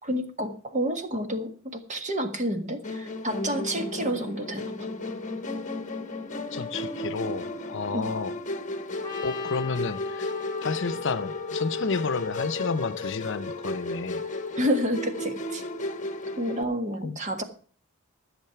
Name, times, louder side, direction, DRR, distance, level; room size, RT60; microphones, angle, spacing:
voice 1, 0.0-4.7 7.9-8.1 14.6-15.6 16.4-17.4, equal, 35° right, 1.6 m, -29 dB
Musical instrument, 2.8-16.6, left 2 dB, 35° left, 1.1 m, -34 dB
voice 2, 6.5-8.3 9.2-10.3 10.6-14.2 17.0-17.2, left 4 dB, 60° left, 0.7 m, -31 dB
Trumpet, 9.0-13.2, left 6 dB, 20° left, 1.7 m, -41 dB
14.0 x 7.5 x 5.8 m
head